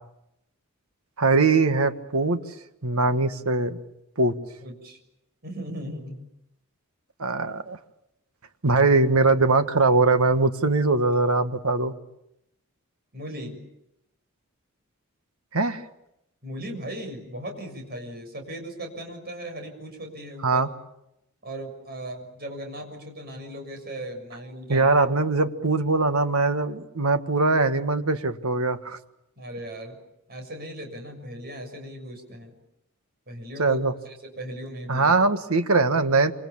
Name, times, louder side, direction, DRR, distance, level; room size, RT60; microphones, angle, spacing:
voice 1, 1.2-2.4 2.8-3.8 4.2-4.3 7.2-7.8 8.6-11.9 15.5-15.8 20.4-20.7 24.7-29.0 33.6-33.9 34.9-36.3, right 3 dB, 75° right, 9 dB, 1.6 m, -21 dB
voice 2, 4.6-5.0 5.4-6.2 13.1-13.6 16.4-20.6 21.4-24.9 29.4-30.0 30.3-32.5 33.3-35.1, right 1 dB, 45° right, 4 dB, 6.8 m, -37 dB
27.0 x 26.5 x 7.3 m, 0.86 s
head